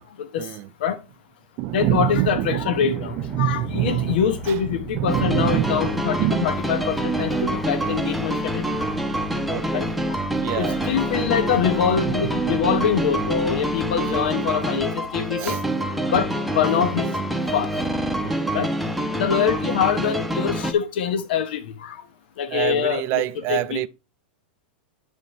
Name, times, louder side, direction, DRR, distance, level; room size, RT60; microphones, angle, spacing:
voice 1, 0.4-0.7 1.6-6.5 9.5-9.8 10.4-10.9 11.1-11.3 12.1-12.7 14.1-14.4 15.4-15.6 18.2-18.6 22.5-23.9, right 16 dB, 45° right, 0.4 m, -27 dB
voice 2, 1.7-8.9 9.7-9.9 10.6-15.6 16.1-17.1 17.5-17.7 18.5-18.7 19.1-22.0 22.4-23.2 23.5-23.9, left 8 dB, 70° left, 0.9 m, -24 dB
sound 1, 3.0-15.7, left 4 dB, 30° left, 0.8 m, -41 dB
sound 2, 5.1-20.7, right 1 dB, ahead, 0.8 m, -26 dB
10.5 x 3.6 x 4.2 m
hypercardioid pair, 125°, 6 cm